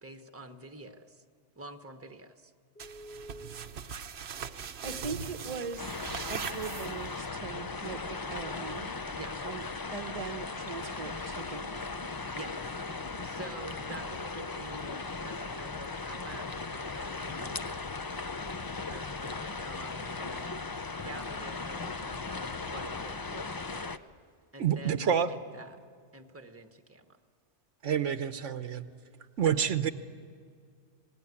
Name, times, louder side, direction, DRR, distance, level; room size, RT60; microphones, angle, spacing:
voice 1, 0.0-1.2 1.6-2.5 9.1-9.4 12.3-12.8 13.2-18.3 18.8-20.5 21.0-23.9 24.5-25.8 26.1-27.2 29.4-29.5, right 2 dB, 10° right, 7 dB, 1.2 m, -47 dB
Telephone, 2.7-3.5 5.3-10.9 14.0-16.5 19.6-22.2, equal, 55° left, 7.8 m, -57 dB
sound 1, 2.8-7.3, right 7 dB, 60° right, 1.1 m, -40 dB
voice 2, 4.5-5.9 6.3-9.0 9.4-9.6 9.9-11.9, right 4 dB, 30° right, 8 dB, 1.1 m, -40 dB
sound 2, 5.8-24.0, left 3 dB, 25° left, 0.4 m, -38 dB
voice 3, 24.6-25.3 27.8-28.9 29.4-29.9, right 8 dB, 85° right, 11 dB, 1.3 m, -28 dB
26.5 x 19.0 x 9.7 m, 2.2 s
omnidirectional pair, 1.2 m